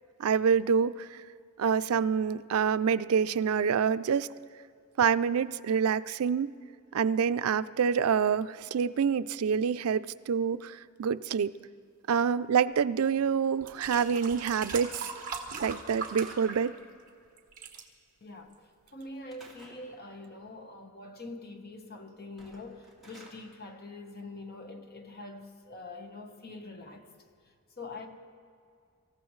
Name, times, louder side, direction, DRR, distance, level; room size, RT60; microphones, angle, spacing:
voice 1, 0.2-1.2 1.6-4.3 5.0-6.5 6.9-11.5 12.1-15.3 15.6-16.7, right 7 dB, 90° right, 0.4 m, -27 dB
sound 1, 13.0-13.1 13.6-17.1 17.4-17.8 18.5-18.6, right 5 dB, 40° right, 1.4 m, -40 dB
Slam / Wood, 15.5-16.8 19.3-19.9 22.2-23.4, right 2 dB, ahead, 2.8 m, -54 dB
voice 2, 18.2-27.1 27.8-28.1, left 2 dB, 45° left, 1.2 m, -44 dB
25.5 x 15.0 x 3.2 m
head